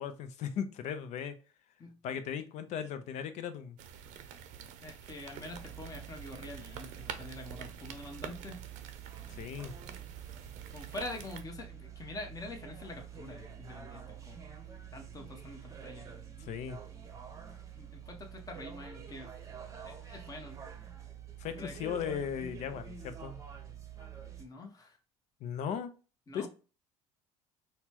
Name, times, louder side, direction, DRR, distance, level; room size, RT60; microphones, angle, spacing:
voice 1, 0.0-1.4 2.0-3.8 9.3-9.7 16.4-16.8 21.4-23.4 25.4-25.9 26.3-26.5, left 8 dB, 60° left, 10 dB, 0.6 m, -37 dB
sound 1, 3.8-11.4, right 8 dB, 65° right, 0.6 m, -47 dB
voice 2, 4.8-8.7 10.7-14.4 14.9-16.1 17.7-19.3 19.8-20.6 21.6-21.8 24.4-25.0 26.3-26.5, left 2 dB, 25° left, 3 dB, 1.1 m, -45 dB
sound 2, 5.5-24.4, right 8 dB, 25° right, 0.8 m, -47 dB
4.1 x 2.2 x 2.9 m, 0.35 s
supercardioid pair, 85°, 14 cm